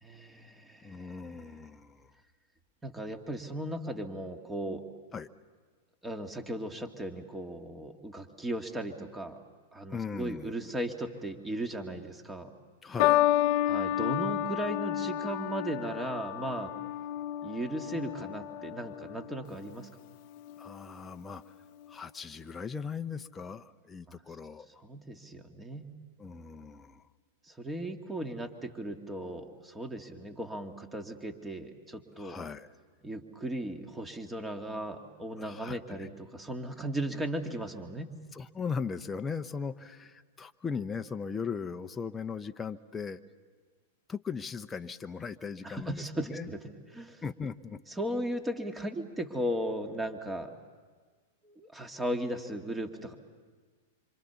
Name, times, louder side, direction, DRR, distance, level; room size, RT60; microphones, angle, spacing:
voice 1, 0.0-1.2 2.8-4.8 6.0-9.4 9.7-12.5 13.6-16.7 17.4-19.9 24.1-24.2 24.8-25.9 27.5-32.4 33.0-38.1 45.6-46.6 46.9-47.2 48.0-50.5 51.4-53.1, right 1 dB, 10° right, 5 dB, 2.2 m, -36 dB
voice 2, 0.8-2.1 5.1-5.3 9.9-10.5 12.8-13.2 20.6-21.4 21.9-24.8 26.2-27.0 32.2-32.7 35.4-36.1 38.3-43.2 44.1-46.5 47.2-47.8, left 5 dB, 15° left, 7 dB, 0.8 m, -38 dB
sound 1, 13.0-19.5 20.4-20.8, left 13 dB, 50° left, 0.7 m, -30 dB
26.5 x 26.0 x 7.1 m, 1.5 s
hypercardioid pair, 110°, 0 cm